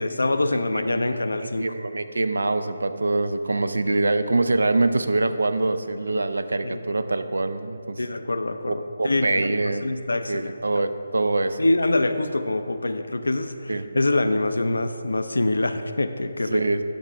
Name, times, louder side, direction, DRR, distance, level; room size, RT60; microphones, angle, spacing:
voice 1, 0.0-1.7 6.6-6.8 8.0-10.5 11.6-16.6, left 2 dB, 80° left, 9 dB, 0.5 m, -25 dB
voice 2, 1.6-8.0 8.7-9.9 10.3-11.6 13.7-13.9 16.5-16.8, right 2 dB, 80° right, 11 dB, 0.5 m, -24 dB
11.5 x 6.0 x 3.4 m, 2.5 s
figure-of-eight pair, 150°, 0 cm